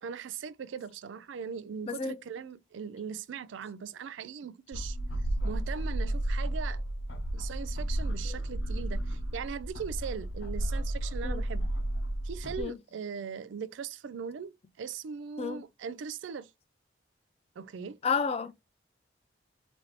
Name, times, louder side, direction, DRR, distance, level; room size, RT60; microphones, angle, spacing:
voice 1, 0.0-5.0 5.4-6.8 7.3-11.7 12.2-16.5 17.6-18.0, right 6 dB, 75° right, 0.4 m, -39 dB
voice 2, 1.9-2.2 8.3-8.4 11.2-11.4 12.6-12.8 15.4-15.7 18.0-18.5, left 5 dB, 30° left, 0.3 m, -31 dB
sound 1, 4.7-12.6, right 1 dB, 85° left, 0.8 m, -32 dB
4.1 x 2.6 x 3.0 m
head